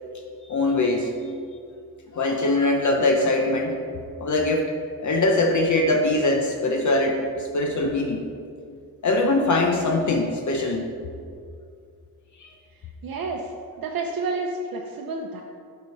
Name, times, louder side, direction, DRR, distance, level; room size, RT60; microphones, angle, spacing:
voice 1, 0.5-1.1 2.1-3.8 4.2-8.2 9.0-10.9 12.4-12.5, left 2 dB, 50° left, 2 dB, 0.7 m, -22 dB
voice 2, 13.0-15.4, right 3 dB, 65° right, 0 dB, 0.7 m, -30 dB
13.0 x 4.9 x 4.1 m, 2.4 s
wide cardioid pair, 170°, 37 cm